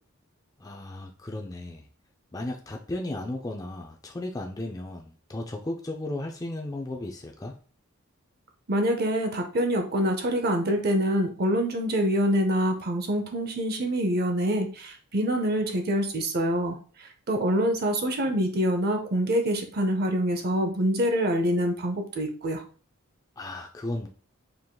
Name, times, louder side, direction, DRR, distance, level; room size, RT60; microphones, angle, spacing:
voice 1, 0.6-1.8 2.3-7.5 23.4-24.1, left 1 dB, 15° left, 1 dB, 0.3 m, -35 dB
voice 2, 8.7-22.6, equal, 45° right, 4 dB, 0.6 m, -26 dB
4.6 x 3.5 x 2.2 m, 0.40 s
head